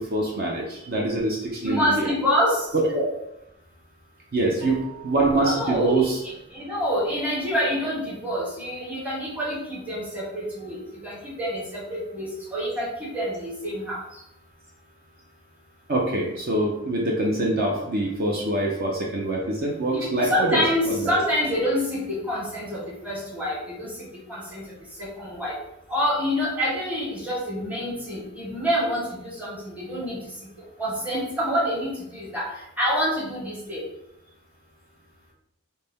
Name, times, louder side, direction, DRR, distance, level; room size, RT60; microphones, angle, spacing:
voice 1, 0.0-2.1 2.7-3.1 4.3-6.2 15.9-21.1, right 2 dB, 50° right, -2 dB, 0.6 m, -24 dB
voice 2, 1.6-2.6 5.3-6.0 6.5-14.0 19.9-23.9 24.3-24.6 25.0-25.5 25.9-30.2 30.8-32.5 32.8-33.8, equal, 5° right, -6 dB, 1.0 m, -27 dB
4.1 x 2.2 x 3.4 m, 0.83 s
head